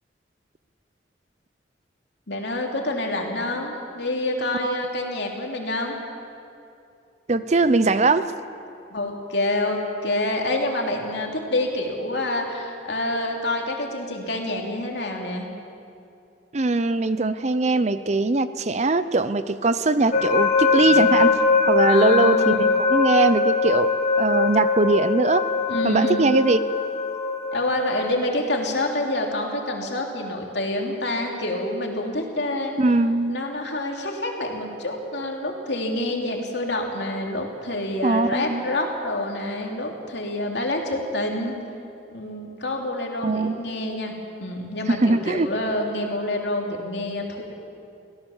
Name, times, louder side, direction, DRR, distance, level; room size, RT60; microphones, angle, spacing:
voice 1, 2.3-6.0 8.9-15.5 20.8-21.5 21.9-22.7 25.7-26.3 27.5-32.8 33.3-41.5 42.1-44.1 44.4-47.4, left 1 dB, 65° left, 1 dB, 3.0 m, -27 dB
voice 2, 7.3-8.3 16.5-21.4 21.7-23.9 24.2-25.5 25.8-26.6 32.8-33.4 38.0-38.6 43.2-43.6 44.9-45.5, right 3 dB, 35° right, 13 dB, 0.6 m, -21 dB
sound 1, 20.1-28.1, left 4 dB, 40° left, 1.7 m, -22 dB
23.0 x 17.0 x 7.2 m, 2.6 s
head